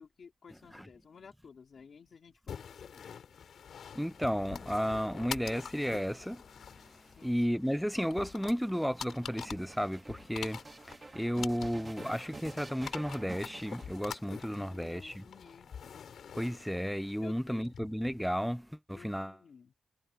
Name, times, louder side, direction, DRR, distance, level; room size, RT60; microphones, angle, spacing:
voice 1, 0.0-3.1 7.2-7.3 14.5-16.0 17.2-17.7 18.9-19.7, left 6 dB, 50° left, 2.6 m, -54 dB
sound 1, 2.5-18.3, left 7 dB, 65° left, 4.7 m, -46 dB
voice 2, 3.9-6.4 7.2-15.2 16.3-19.3, equal, ahead, 0.4 m, -33 dB
sound 2, 6.6-14.5 15.3-16.2, right 3 dB, 20° right, 1.9 m, -50 dB
wide cardioid pair, 170°, 0 cm